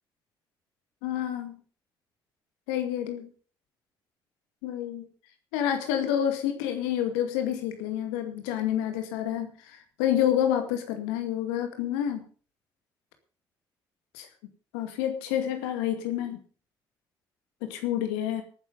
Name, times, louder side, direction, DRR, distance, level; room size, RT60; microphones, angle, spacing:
voice 1, 1.0-1.6 2.7-3.3 4.6-5.1 5.5-12.3 14.1-14.3 14.7-16.4 17.6-18.4, left 10 dB, 80° left, 7 dB, 2.2 m, -28 dB
18.0 x 9.6 x 5.3 m, 0.40 s
hypercardioid pair, 45°, 11 cm